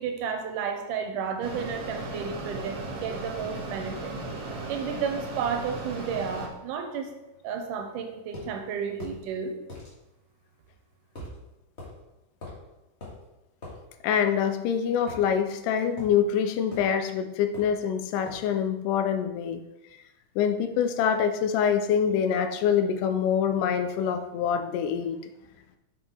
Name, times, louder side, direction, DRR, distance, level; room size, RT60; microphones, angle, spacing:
voice 1, 0.0-4.1 4.7-7.1 7.4-9.5, right 6 dB, 85° right, 4 dB, 2.3 m, -32 dB
Mechanisms, 1.4-6.5, right 2 dB, 55° right, 1.3 m, -36 dB
sound 1, 8.3-8.5 9.0-9.2 9.7-9.9 11.2-11.4 11.8-11.9 12.4-12.6 13.0-13.2 13.6-13.8 15.1-15.6 16.0-16.2 16.7-16.9 17.5-17.8 18.3-18.5, left 2 dB, 25° left, 1.6 m, -42 dB
voice 2, 14.0-19.6 20.4-25.2, left 8 dB, 90° left, 8 dB, 2.2 m, -25 dB
6.0 x 5.4 x 4.4 m, 0.95 s
omnidirectional pair, 3.6 m